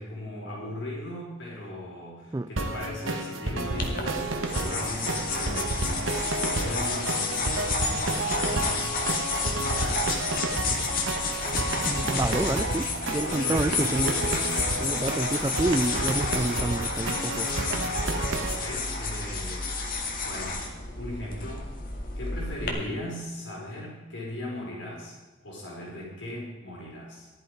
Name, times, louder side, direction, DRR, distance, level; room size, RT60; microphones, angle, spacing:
voice 1, 0.0-6.0 6.5-7.5 7.8-8.9 9.4-10.1 11.2-11.7 13.1-13.7 18.5-19.7 20.2-20.6 20.9-21.7 22.2-25.2 25.4-27.3, left 1 dB, 65° left, -4 dB, 5.0 m, -38 dB
sound 1, 2.6-18.6, right 2 dB, 75° right, 1.5 m, -31 dB
sound 2, 3.8-22.7, left 3 dB, 45° left, 2.2 m, -31 dB
voice 2, 11.9-14.2 14.8-17.5, right 2 dB, 15° right, 11 dB, 0.3 m, -28 dB
15.0 x 11.5 x 5.1 m, 1.2 s
head